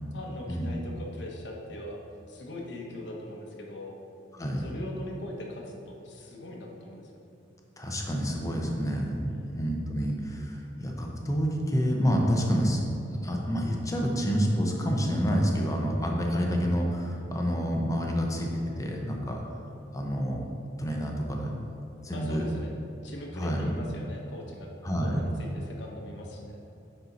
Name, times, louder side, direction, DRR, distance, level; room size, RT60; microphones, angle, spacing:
voice 1, 0.1-2.0 2.3-3.9 4.6-7.3 9.3-9.6 22.1-22.7 23.0-24.7 25.0-26.6, left 1 dB, 65° left, -1 dB, 1.1 m, -41 dB
voice 2, 4.3-4.6 7.8-9.2 9.5-12.8 13.2-19.4 19.9-20.4 20.8-21.5 22.0-22.5 23.3-23.7 24.8-25.2, equal, 15° left, 0 dB, 0.8 m, -28 dB
10.0 x 4.4 x 4.0 m, 2.8 s
head